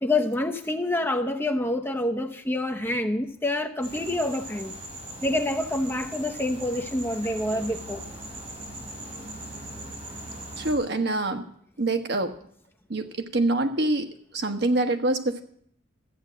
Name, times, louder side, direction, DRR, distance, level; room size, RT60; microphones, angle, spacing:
voice 1, 0.0-4.7 5.2-8.0, left 1 dB, 10° left, 3 dB, 0.9 m, -27 dB
sound 1, 3.8-10.7, right 1 dB, 35° right, 5.6 m, -39 dB
voice 2, 10.6-11.5 11.8-12.3 12.9-14.1 14.3-15.4, right 2 dB, 60° right, 6 dB, 1.2 m, -25 dB
14.0 x 8.8 x 7.5 m, 0.64 s
head